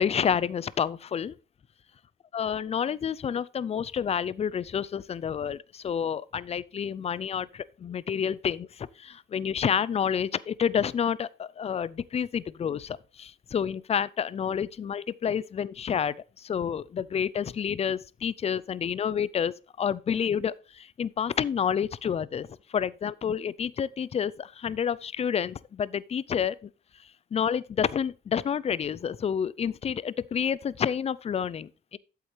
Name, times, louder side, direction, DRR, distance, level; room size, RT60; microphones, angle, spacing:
voice 1, 0.0-1.3 2.3-26.7 27.3-32.0, left 8 dB, 30° left, 0.4 m, -29 dB
8.2 x 7.7 x 3.2 m
cardioid pair, 90°, 20 cm